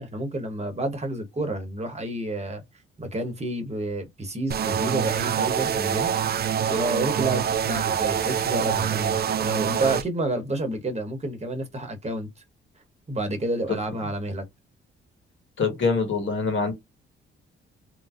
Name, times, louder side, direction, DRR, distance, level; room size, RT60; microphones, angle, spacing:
voice 1, 0.0-2.6 3.0-6.1 6.7-12.3 13.1-14.4, right 2 dB, 30° right, 1.1 m, -29 dB
sound 1, 4.5-10.0, right 8 dB, 50° right, 0.5 m, -25 dB
voice 2, 15.6-16.7, left 4 dB, 65° left, 1.6 m, -24 dB
3.2 x 2.6 x 2.4 m
cardioid pair, 80°, 21 cm